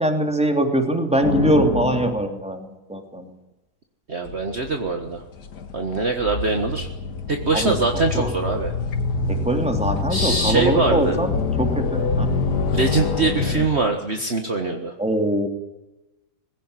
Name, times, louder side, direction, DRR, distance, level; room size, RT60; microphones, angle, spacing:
voice 1, 0.0-3.3 7.5-7.8 8.1-8.3 9.3-12.3 15.0-15.5, right 1 dB, 5° right, 4 dB, 3.0 m, -22 dB
sound 1, 1.2-2.2 4.3-13.7, left 4 dB, 80° left, 2.1 m, -26 dB
voice 2, 4.1-5.2 5.7-6.9 7.3-8.7 10.1-11.2 12.7-14.9, right 3 dB, 40° right, 4 dB, 1.8 m, -23 dB
20.5 x 16.5 x 9.8 m, 0.97 s
omnidirectional pair, 1.7 m